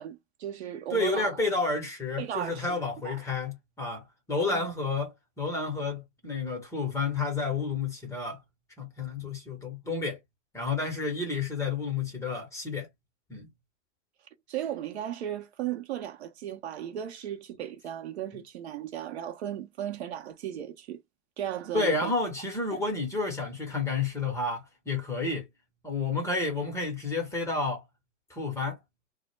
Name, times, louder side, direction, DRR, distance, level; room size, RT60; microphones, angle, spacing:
voice 1, 0.0-1.3 2.2-3.2 4.5-4.7 14.5-21.0 21.4-22.1 22.7-22.8, right 11 dB, 60° right, 0.6 m, -36 dB
voice 2, 0.9-8.4 8.8-10.2 10.5-12.9 13.3-13.5 21.7-25.5 25.8-27.8 28.3-28.8, left 3 dB, 10° left, 0.6 m, -30 dB
2.0 x 2.0 x 3.0 m
hypercardioid pair, 125°, 38 cm